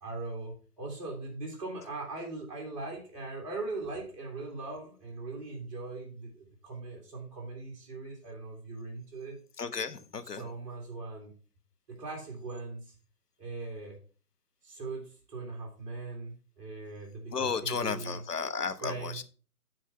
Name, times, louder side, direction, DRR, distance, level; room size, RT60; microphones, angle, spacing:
voice 1, 0.0-9.4 10.2-11.3 11.9-12.9 13.4-14.0 14.6-18.2 18.8-19.2, right 3 dB, 20° right, 2.2 m, -40 dB
voice 2, 9.6-10.4 17.3-19.2, left 5 dB, 80° left, 1.1 m, -33 dB
8.8 x 4.6 x 5.5 m
figure-of-eight pair, 150°, 46 cm